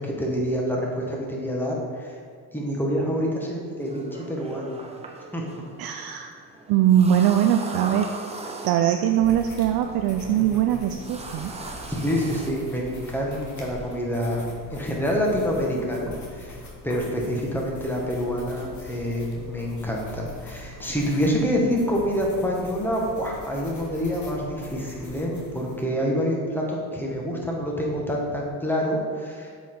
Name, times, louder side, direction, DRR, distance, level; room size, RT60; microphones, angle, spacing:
voice 1, 0.0-2.1 2.5-4.8 5.3-5.4 10.3-10.9 11.9-14.4 14.7-16.6 16.8-29.5, equal, 5° left, -2 dB, 1.5 m, -27 dB
sound 1, 3.8-14.0, right 2 dB, 15° right, 0.7 m, -40 dB
voice 2, 5.8-6.4 6.7-8.1 8.6-11.5, right 10 dB, 55° right, 5 dB, 0.5 m, -21 dB
sound 2, 9.1-25.8, left 1 dB, 40° left, 1.7 m, -43 dB
7.2 x 4.9 x 3.8 m, 2.1 s
supercardioid pair, 90°, 45 cm